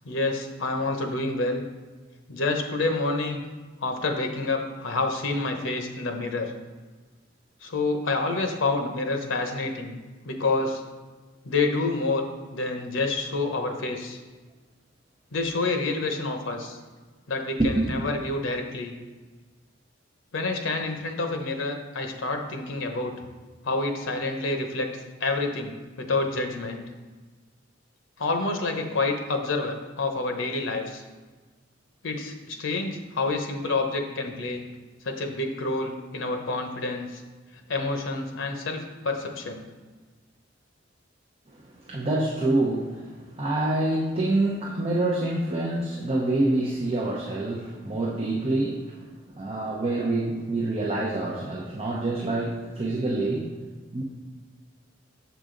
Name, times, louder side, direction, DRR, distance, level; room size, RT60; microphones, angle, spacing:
voice 1, 0.0-1.6 2.3-3.4 3.8-6.5 7.6-10.0 10.2-10.8 11.4-12.2 12.5-14.2 15.3-16.8 17.3-18.9 20.3-23.1 23.6-24.9 25.2-26.8 28.2-31.0 32.0-34.6 35.0-37.2 37.7-39.6, left 3 dB, 90° left, 5 dB, 0.8 m, -28 dB
voice 2, 17.6-18.0 41.9-42.9 43.4-48.8 49.4-53.5 53.9-54.0, right 2 dB, 30° right, -3 dB, 0.7 m, -26 dB
6.8 x 5.0 x 3.8 m, 1.3 s
head